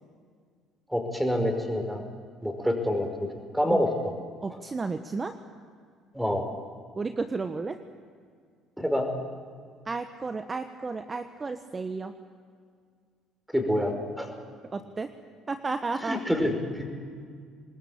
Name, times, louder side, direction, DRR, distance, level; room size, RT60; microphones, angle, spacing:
voice 1, 0.9-2.0 2.4-3.1 3.5-4.1 4.5-4.6 6.1-6.4 8.8-9.1 13.5-14.3 16.0-16.9, equal, 5° right, 5 dB, 5.5 m, -27 dB
voice 2, 4.4-5.3 7.0-7.8 9.9-12.1 14.7-15.1 15.5-16.2, right 4 dB, 30° right, 9 dB, 1.2 m, -32 dB
25.5 x 20.5 x 8.8 m, 2.1 s
hypercardioid pair, 55°, 0 cm